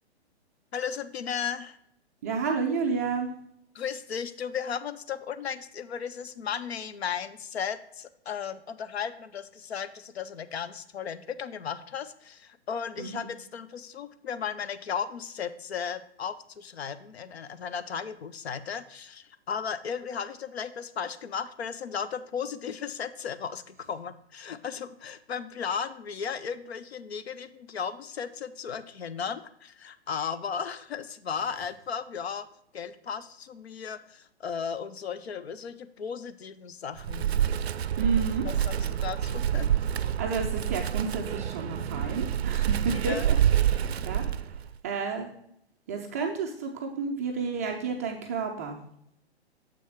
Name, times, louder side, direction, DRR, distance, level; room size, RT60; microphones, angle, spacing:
voice 1, 0.7-1.8 3.7-32.5 32.7-37.3 38.4-39.7 43.0-43.3, left 7 dB, 70° left, 13 dB, 0.7 m, -35 dB
voice 2, 2.2-3.3 13.0-13.2 38.0-38.5 40.2-43.4 43.6-44.2 44.8-45.3 45.9-48.8, right 5 dB, 15° right, 1 dB, 0.3 m, -31 dB
Wind, 37.0-44.7, right 10 dB, 70° right, 0.5 m, -27 dB
7.0 x 6.1 x 3.5 m, 0.72 s
figure-of-eight pair, 120°, 33 cm